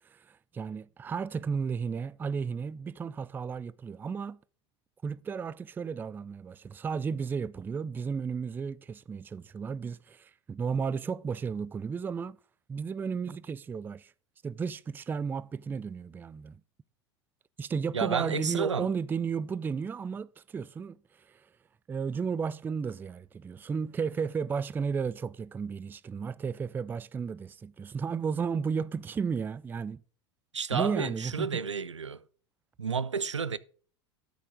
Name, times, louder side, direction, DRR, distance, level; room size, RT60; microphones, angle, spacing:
voice 1, 0.1-4.4 5.0-12.4 12.7-14.1 14.4-16.6 17.6-21.5 21.9-30.0 30.7-31.5, right 6 dB, 15° right, 0.3 m, -33 dB
voice 2, 17.9-18.9 30.5-32.2 32.8-33.6, right 6 dB, 85° right, 0.5 m, -31 dB
12.5 x 6.6 x 3.6 m
figure-of-eight pair, 85°, 15 cm